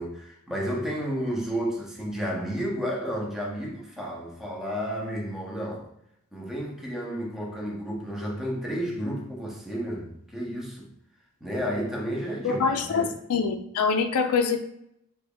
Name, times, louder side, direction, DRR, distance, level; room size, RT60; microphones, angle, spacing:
voice 1, 0.0-5.9 6.3-10.9 11.4-13.1, equal, ahead, -2 dB, 0.6 m, -32 dB
voice 2, 12.4-14.6, left 5 dB, 85° left, 6 dB, 0.4 m, -25 dB
3.4 x 2.2 x 3.4 m, 0.77 s
head